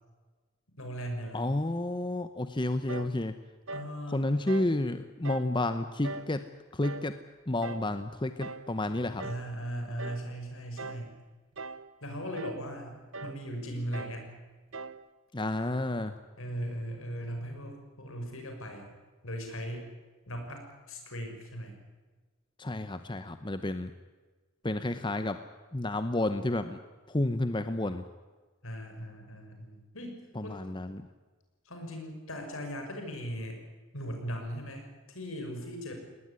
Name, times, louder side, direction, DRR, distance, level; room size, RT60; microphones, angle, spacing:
voice 1, 0.8-1.4 3.7-4.4 9.2-11.1 12.0-14.3 16.4-18.9 19.2-19.8 20.3-21.7 28.6-30.2 30.4-30.7 31.6-33.6 33.9-35.9, equal, 70° left, 4 dB, 6.2 m, -38 dB
voice 2, 1.3-3.3 4.1-6.4 6.7-7.2 7.5-9.3 15.3-16.1 22.6-23.9 24.6-25.4 25.7-26.8 27.1-28.0 30.4-31.0, left 1 dB, 20° left, 10 dB, 0.8 m, -31 dB
sound 1, 2.9-3.2 3.7-4.0 4.5-4.8 5.2-5.5 6.0-6.4 6.8-7.1 7.6-7.9 8.4-8.7 9.2-9.5 10.0-10.3 10.8-11.1 11.6-11.9 12.4-12.6 13.1-13.4 13.9-14.2 14.7-15.0, right 3 dB, 60° right, 1.0 m, -41 dB
19.5 x 19.5 x 9.8 m, 1.3 s
head